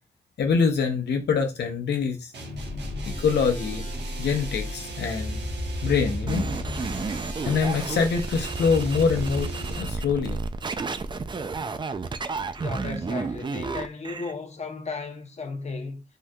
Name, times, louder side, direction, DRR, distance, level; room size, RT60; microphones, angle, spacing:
voice 1, 0.4-2.3 3.0-3.8 4.2-5.4 5.8-6.5 7.5-9.5 9.8-10.4, left 5 dB, 85° left, 0.6 m, -24 dB
sound 1, 2.3-9.9, right 1 dB, 80° right, 1.0 m, -39 dB
sound 2, 2.5-10.4 11.3-13.0, left 1 dB, 15° left, 1.3 m, -35 dB
sound 3, 6.3-14.3, right 4 dB, 25° right, 0.3 m, -32 dB
voice 2, 12.6-16.0, left 4 dB, 40° left, 0.8 m, -35 dB
3.6 x 2.7 x 2.2 m
cardioid pair, 80°, 17 cm